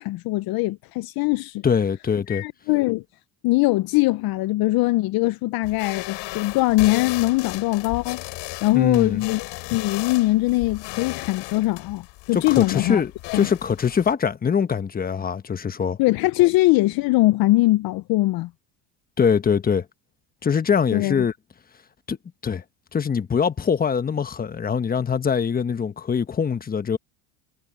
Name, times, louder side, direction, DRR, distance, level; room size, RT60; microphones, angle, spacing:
voice 1, 0.0-1.6 2.3-3.0 3.4-8.2 8.6-13.0 13.3-13.5 16.0-18.5 20.9-21.2, left 19 dB, 55° left, 0.7 m, -21 dB
voice 2, 1.6-2.4 8.7-9.3 12.3-16.0 19.2-19.8 20.4-21.3 22.1-22.2 22.4-22.6 22.9-27.0, left 6 dB, 20° left, 1.2 m, -23 dB
sound 1, 5.6-14.1, left 23 dB, 70° left, 7.3 m, -35 dB
supercardioid pair, 115°, 45 cm